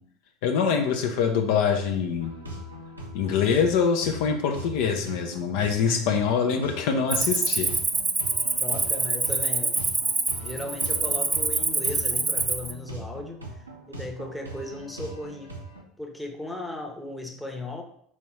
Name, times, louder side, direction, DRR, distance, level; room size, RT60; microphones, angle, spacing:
voice 1, 0.4-2.3 3.1-7.7, left 6 dB, 60° left, 4 dB, 0.5 m, -24 dB
sound 1, 2.2-15.8, right 1 dB, 90° right, 0.7 m, -40 dB
Cricket, 7.1-12.7, right 4 dB, 20° right, 0.4 m, -26 dB
voice 2, 8.6-9.7 10.4-15.5 16.0-17.8, left 1 dB, 5° left, 2 dB, 0.8 m, -37 dB
4.2 x 3.5 x 3.0 m, 0.65 s
figure-of-eight pair, 75°, 0 cm